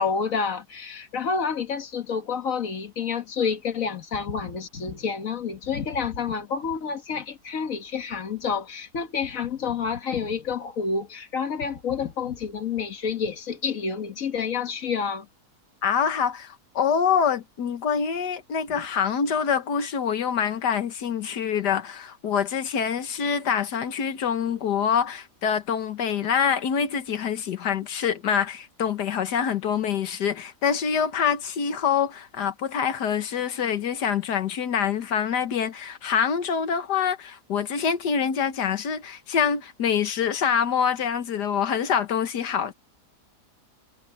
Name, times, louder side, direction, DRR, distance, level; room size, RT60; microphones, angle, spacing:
voice 1, 0.0-15.3, left 6 dB, 55° left, 1.8 m, -29 dB
voice 2, 15.8-42.7, left 7 dB, 85° left, 1.8 m, -25 dB
omnidirectional pair, 1.7 m